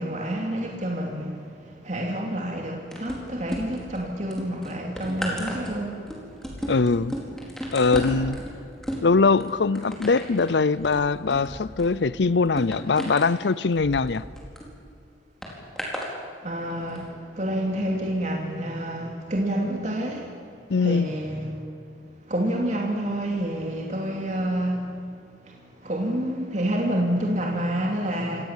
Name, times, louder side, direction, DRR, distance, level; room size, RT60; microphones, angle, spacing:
voice 1, 0.0-6.1 16.4-20.4 20.8-21.5 22.3-24.9 25.4-25.6 25.8-28.5, right 1 dB, 40° right, 2.8 m, -28 dB
sound 1, 2.9-4.0 4.3-14.7 15.4-16.1 16.8-17.0, equal, 5° left, 4.5 m, -34 dB
voice 2, 6.7-7.1 7.7-8.4 9.0-14.3 20.7-21.1, left 4 dB, 75° left, 0.6 m, -22 dB
27.5 x 18.5 x 7.4 m
head